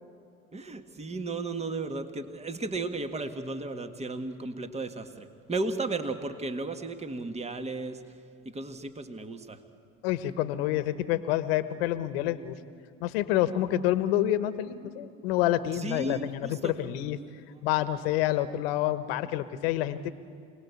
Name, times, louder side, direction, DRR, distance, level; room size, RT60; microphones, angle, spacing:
voice 1, 0.5-8.0 8.5-9.6 15.8-16.7, right 3 dB, 20° right, 8 dB, 1.8 m, -34 dB
voice 2, 10.0-12.6 13.0-17.2 17.6-20.1, left 13 dB, 80° left, 13 dB, 1.2 m, -28 dB
27.5 x 19.0 x 8.4 m, 2.4 s
hypercardioid pair, 75°, 30 cm